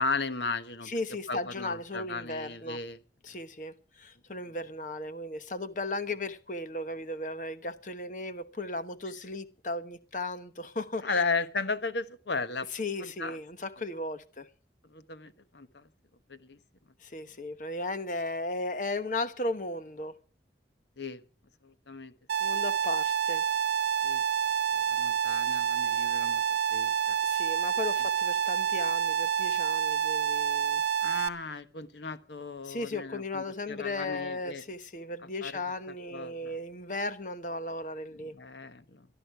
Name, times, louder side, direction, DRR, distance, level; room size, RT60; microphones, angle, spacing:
voice 1, 0.0-0.9 1.3-3.0 11.0-12.7 13.0-13.4 14.9-15.9 16.3-16.6 21.0-21.2 21.6-22.1 24.0-24.2 24.7-26.4 26.7-27.1 31.0-34.6 35.4-35.6 36.1-36.5 38.2-39.1, left 4 dB, 85° left, 1.4 m, -35 dB
voice 2, 0.8-2.8 3.2-11.2 12.7-14.5 17.0-20.1 22.4-23.5 27.2-30.8 32.6-38.3, left 2 dB, 45° left, 1.2 m, -36 dB
sound 1, 22.3-31.3, right 8 dB, 85° right, 0.9 m, -28 dB
18.5 x 12.5 x 4.8 m
head